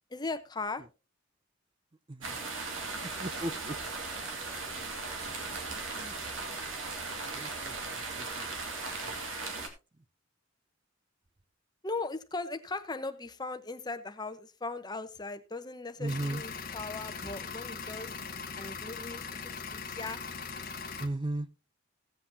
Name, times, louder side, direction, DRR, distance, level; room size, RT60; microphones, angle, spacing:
voice 1, 0.1-0.8 11.8-18.1 18.6-20.2, left 3 dB, 20° left, 0.9 m, -38 dB
voice 2, 2.1-2.4 3.2-3.8 5.1-6.2 7.2-8.9 16.0-16.4 21.0-21.5, right 2 dB, 25° right, 0.5 m, -38 dB
sound 1, 2.2-9.7, right 3 dB, 80° right, 2.2 m, -37 dB
sound 2, 16.1-21.1, left 5 dB, 45° left, 1.1 m, -40 dB
17.0 x 7.7 x 2.8 m
head